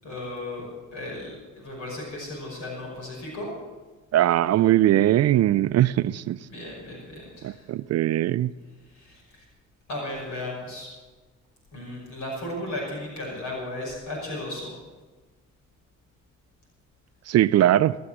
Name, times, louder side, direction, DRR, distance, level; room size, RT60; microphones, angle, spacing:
voice 1, 0.0-3.5 6.4-7.6 8.9-9.2 9.9-10.9 11.7-14.7, left 1 dB, 75° left, 5.7 m, -35 dB
voice 2, 4.1-6.4 7.4-8.5 17.3-18.0, right 13 dB, 55° right, 0.4 m, -20 dB
20.0 x 7.1 x 7.6 m
cardioid pair, 90°, 30 cm